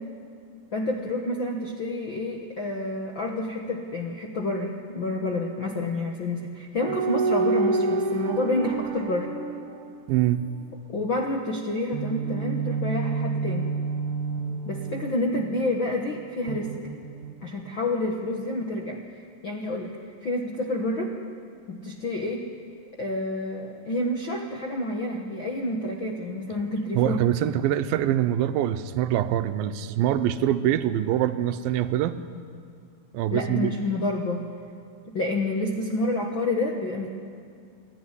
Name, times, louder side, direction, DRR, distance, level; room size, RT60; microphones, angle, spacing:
voice 1, 0.7-9.3 10.9-13.7 14.6-16.7 17.4-19.0 19.4-19.9 20.2-21.1 21.7-22.4 23.0-27.2 33.3-34.5 35.1-37.1, left 2 dB, 65° left, 1 dB, 1.2 m, -29 dB
sound 1, 6.8-10.5 11.9-15.7 16.5-17.7, right 4 dB, 65° right, 2.8 m, -29 dB
voice 2, 10.1-10.4 26.9-32.2 33.1-33.7, right 12 dB, 80° right, 10 dB, 2.5 m, -24 dB
28.0 x 12.5 x 9.8 m, 2.2 s
omnidirectional pair, 4.3 m